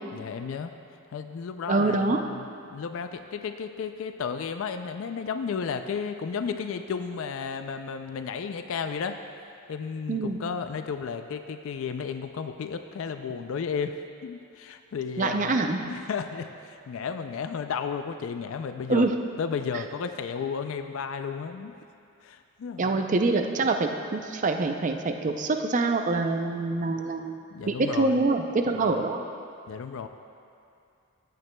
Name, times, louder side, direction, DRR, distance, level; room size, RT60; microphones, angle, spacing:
voice 1, 0.1-0.7 1.1-2.4 2.7-9.2 9.7-15.6 15.9-19.1 19.4-21.7 22.2-23.0 27.5-28.2 28.7-29.1 29.7-30.1, left 6 dB, 60° left, 8 dB, 0.3 m, -33 dB
voice 2, 1.7-2.3 10.1-10.4 15.2-15.8 18.9-19.1 22.8-27.4 27.7-29.2, right 3 dB, 35° right, 5 dB, 0.4 m, -25 dB
14.5 x 9.2 x 2.2 m, 2.6 s
head